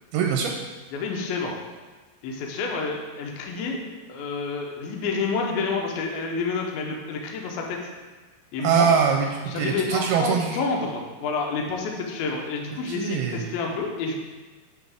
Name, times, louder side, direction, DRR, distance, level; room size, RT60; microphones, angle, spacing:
voice 1, 0.1-0.5 8.6-10.6 12.9-13.5, right 7 dB, 85° right, 1 dB, 2.5 m, -23 dB
voice 2, 0.9-1.6 2.2-3.8 4.1-7.8 8.5-8.9 9.5-14.1, left 4 dB, 75° left, 0 dB, 2.5 m, -29 dB
7.2 x 6.2 x 3.5 m, 1.3 s
omnidirectional pair, 4.6 m